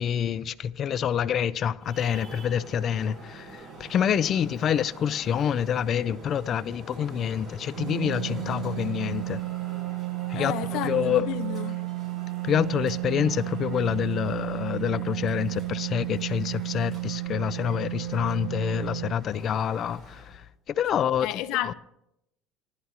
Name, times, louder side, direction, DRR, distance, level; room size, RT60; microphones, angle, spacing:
voice 1, 0.0-9.4 10.3-11.3 12.4-20.3 20.7-21.7, left 8 dB, 45° left, 0.4 m, -27 dB
Traffic noise roadway noise, 1.8-20.4, right 2 dB, 25° right, 4.8 m, -47 dB
sound 1, 7.8-19.1, right 20 dB, 85° right, 0.4 m, -32 dB
voice 2, 10.3-11.8 21.2-21.7, left 13 dB, 70° left, 0.9 m, -31 dB
18.5 x 11.0 x 2.9 m
supercardioid pair, 105°, 0 cm